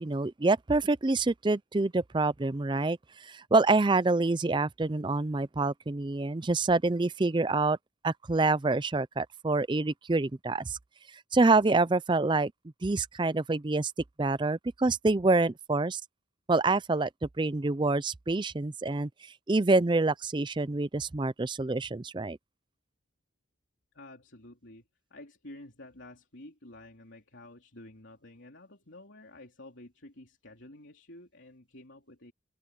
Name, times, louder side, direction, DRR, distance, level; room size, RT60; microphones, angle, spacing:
voice 1, 0.0-7.8 8.0-10.8 11.3-12.5 12.8-13.9 14.2-16.0 16.5-17.1 17.4-19.1 19.5-22.4, right 3 dB, 25° right, 0.4 m, -26 dB
voice 2, 23.9-32.3, left 1 dB, 70° left, 3.3 m, -50 dB
head